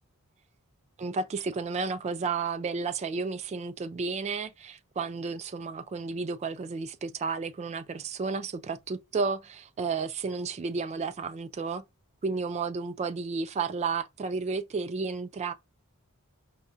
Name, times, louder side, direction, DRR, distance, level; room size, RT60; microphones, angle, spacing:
voice 1, 1.0-11.8 12.2-15.5, right 4 dB, 30° right, 0.3 m, -32 dB
5.2 x 2.3 x 2.5 m
head